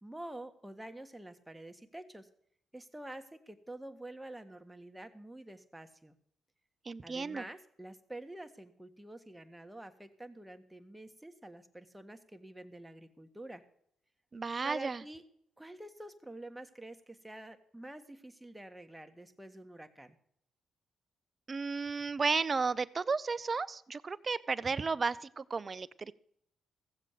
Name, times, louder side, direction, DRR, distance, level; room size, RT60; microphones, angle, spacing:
voice 1, 0.0-2.3 2.7-6.1 7.0-13.6 14.6-15.2 15.6-20.1, right 1 dB, 10° right, 7 dB, 1.6 m, -48 dB
voice 2, 6.8-7.4 14.3-15.0 21.5-26.1, right 4 dB, 40° right, 17 dB, 0.7 m, -33 dB
16.0 x 7.6 x 6.7 m, 0.69 s
cardioid pair, 70°, 0 cm